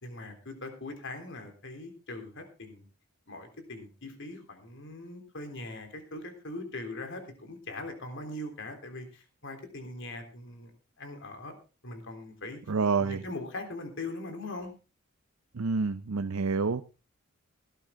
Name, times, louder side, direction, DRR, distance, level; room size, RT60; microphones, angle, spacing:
voice 1, 0.0-2.8 3.3-10.7 11.0-11.6 11.8-12.6 13.0-14.7, left 2 dB, 60° left, 6 dB, 3.5 m, -41 dB
voice 2, 12.7-13.2 15.6-16.8, right 4 dB, 80° right, 11 dB, 0.6 m, -28 dB
17.5 x 12.0 x 3.7 m, 0.32 s
head